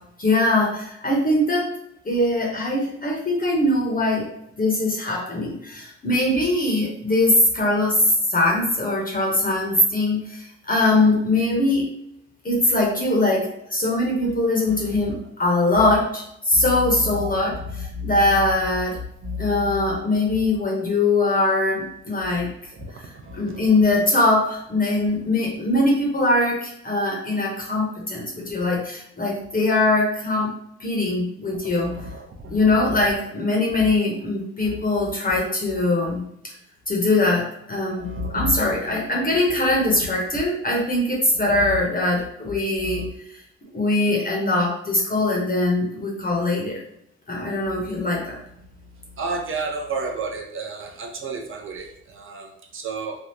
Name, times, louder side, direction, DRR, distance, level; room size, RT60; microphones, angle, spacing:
voice 1, 0.2-1.7 2.0-4.3 4.6-11.9 12.4-19.0 19.4-22.5 23.3-30.5 30.8-31.9 32.5-36.5 36.9-43.4 43.7-46.8 47.3-48.4, left 2 dB, 30° left, -2 dB, 0.8 m, -22 dB
voice 2, 14.5-15.3 15.7-16.0 16.5-18.5 18.9-20.0 20.2-20.4 22.3-23.6 31.6-32.6 32.8-33.0 33.8-34.0 34.6-35.4 35.7-35.8 36.0-36.2 37.9-39.4 39.8-40.0 41.3-43.1 47.6-48.3 48.7-53.2, equal, 45° right, 3 dB, 0.6 m, -33 dB
3.4 x 2.3 x 2.8 m, 0.78 s
cardioid pair, 90°, 30 cm